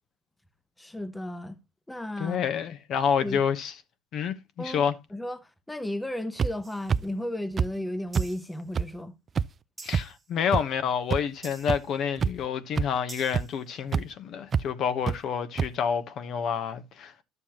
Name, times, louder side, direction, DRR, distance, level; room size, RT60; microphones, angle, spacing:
voice 1, 0.8-1.6 1.9-2.4 3.2-3.4 4.6-4.8 5.1-9.1, left 1 dB, 5° left, 0.8 m, -34 dB
voice 2, 2.2-3.7 4.1-4.9 9.8-17.2, left 7 dB, 50° left, 1.1 m, -28 dB
sound 1, 6.4-6.5 6.9-7.0 7.6-7.7 8.1-8.3 8.8-8.9 9.4-9.5 9.9-10.0 10.5-10.6 11.1-11.2 11.7-11.8 12.2-12.5 12.8-12.9 13.3-13.4 13.9-14.0 14.5-14.6 15.1-15.2 15.6-15.7, right 6 dB, 30° right, 0.4 m, -25 dB
sound 2, 6.6-7.0 8.1-8.6 9.8-10.3 11.4-11.9 13.1-13.6, right 3 dB, 15° right, 1.2 m, -47 dB
11.5 x 7.0 x 2.9 m
supercardioid pair, 110°, 0 cm